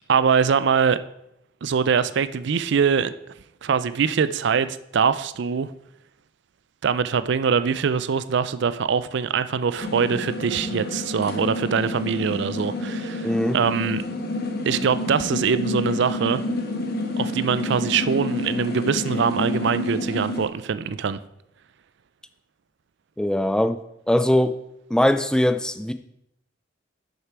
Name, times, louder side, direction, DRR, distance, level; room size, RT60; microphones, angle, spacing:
voice 1, 0.1-1.0 1.6-3.1 3.6-5.7 6.8-14.0 14.6-16.4 17.2-21.2, right 6 dB, 60° right, 14 dB, 0.4 m, -23 dB
sound 1, 9.8-20.5, left 2 dB, 50° left, 1.4 m, -29 dB
voice 2, 13.2-13.6 23.2-23.8 24.1-24.6 24.9-25.9, left 1 dB, 5° left, 10 dB, 0.3 m, -21 dB
10.5 x 6.7 x 4.6 m, 0.80 s
head